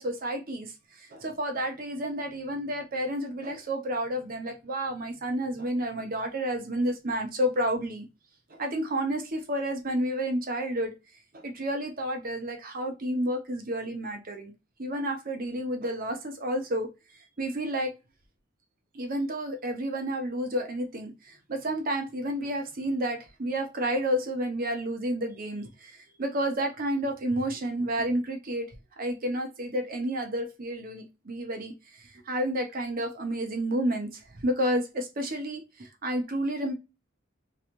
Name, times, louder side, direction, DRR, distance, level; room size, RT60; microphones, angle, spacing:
voice 1, 0.0-8.1 8.5-10.9 11.3-14.5 14.8-16.9 17.4-17.9 18.9-36.7, right 1 dB, 45° right, 0.8 m, -30 dB
3.2 x 3.0 x 2.5 m
head